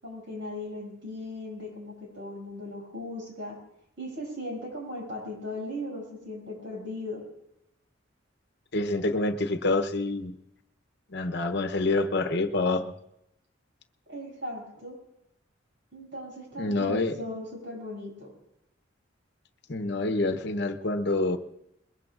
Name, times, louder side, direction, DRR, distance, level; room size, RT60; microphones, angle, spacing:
voice 1, 0.0-3.6 4.0-7.2 14.1-15.0 15.9-18.3, left 1 dB, 70° right, -2 dB, 6.8 m, -38 dB
voice 2, 8.7-10.3 11.1-12.9 16.6-17.1 19.7-21.4, left 2 dB, 60° left, 8 dB, 0.9 m, -27 dB
22.0 x 21.5 x 2.5 m, 0.82 s
head